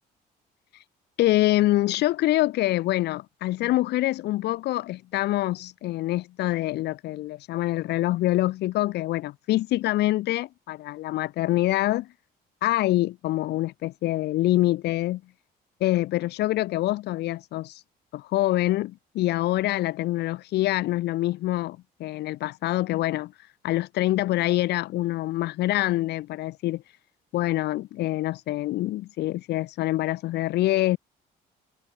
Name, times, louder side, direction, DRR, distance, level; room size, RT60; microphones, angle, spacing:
voice 1, 1.2-12.1 12.6-15.2 15.8-17.8 18.1-23.3 23.6-26.8 27.3-31.0, left 16 dB, 80° left, 7.4 m, -25 dB
cardioid pair, 110°, 17 cm